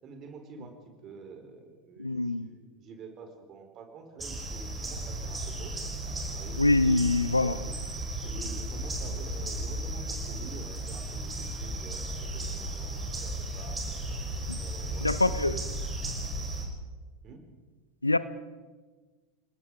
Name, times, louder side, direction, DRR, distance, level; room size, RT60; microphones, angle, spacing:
voice 1, 0.0-5.8 6.0-6.6 7.4-7.7 8.2-13.8 14.6-15.6 17.2-17.5, right 5 dB, 35° right, 5 dB, 4.4 m, -48 dB
voice 2, 2.0-2.5 6.6-7.6 14.5-14.6 15.0-15.6 18.0-18.2, left 2 dB, 85° left, 15 dB, 0.8 m, -24 dB
sound 1, 4.2-16.7, right 1 dB, 15° right, 6.1 m, -35 dB
29.5 x 19.5 x 4.9 m, 1.3 s
figure-of-eight pair, 80°, 0 cm